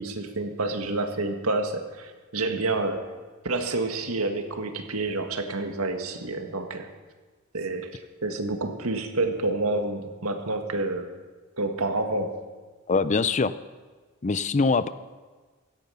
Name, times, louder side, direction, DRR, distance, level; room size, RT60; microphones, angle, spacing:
voice 1, 0.0-3.1 3.4-6.9 7.5-11.1 11.6-12.4, right 2 dB, 85° right, 6 dB, 1.7 m, -28 dB
voice 2, 12.9-13.5 14.2-14.9, left 4 dB, 35° left, 15 dB, 0.5 m, -23 dB
16.5 x 14.0 x 5.7 m, 1.4 s
head